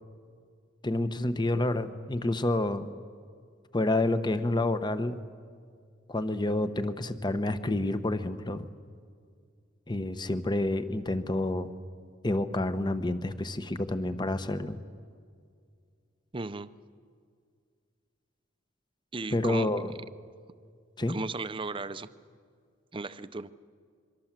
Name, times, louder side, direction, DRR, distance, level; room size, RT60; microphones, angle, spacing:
voice 1, 0.8-2.9 3.7-5.2 6.1-8.7 9.9-11.7 12.2-14.8 19.3-19.9 21.0-21.2, left 2 dB, 25° left, 11 dB, 1.0 m, -29 dB
voice 2, 16.3-16.7 19.1-20.1 21.1-22.1 22.9-23.5, right 3 dB, 25° right, 13 dB, 0.6 m, -36 dB
26.0 x 23.5 x 7.5 m, 2.1 s
head